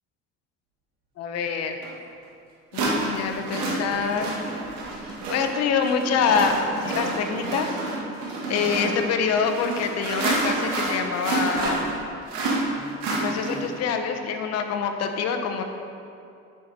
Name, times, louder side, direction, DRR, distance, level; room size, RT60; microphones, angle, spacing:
voice 1, 1.2-1.8 2.7-4.3 5.3-7.7 8.5-11.8 13.2-15.6, left 6 dB, 60° left, 6 dB, 0.9 m, -25 dB
sound 1, 1.8-1.9 2.7-13.8, right 2 dB, 85° right, 1.8 m, -29 dB
9.3 x 6.0 x 4.2 m, 2.5 s
cardioid pair, 115°, 29 cm